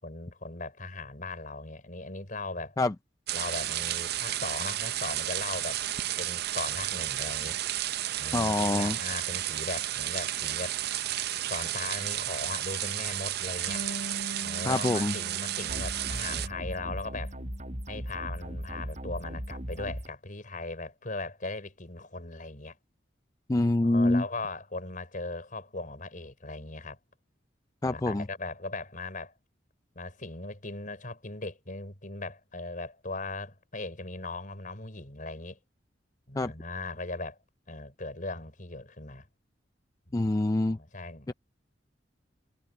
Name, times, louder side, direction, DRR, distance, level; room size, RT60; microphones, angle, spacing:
voice 1, 0.0-2.8 3.3-5.8 6.2-7.6 8.2-10.8 11.5-13.9 14.4-17.4 17.9-22.8 23.8-27.0 27.9-29.3 30.0-35.6 36.3-37.4 37.7-39.3 40.1-40.3 40.7-41.3, left 3 dB, 45° left, 5.4 m, -38 dB
sound 1, 3.3-16.5, right 13 dB, 60° right, 0.5 m, -32 dB
voice 2, 8.3-9.0 14.7-15.2 23.5-24.2 27.8-28.3 36.4-36.5 40.1-40.8 41.3-41.4, left 2 dB, 20° left, 0.4 m, -25 dB
Bass guitar, 13.7-19.9, equal, 70° left, 3.6 m, -44 dB
sound 2, 15.7-20.1, equal, 40° right, 6.5 m, -38 dB
head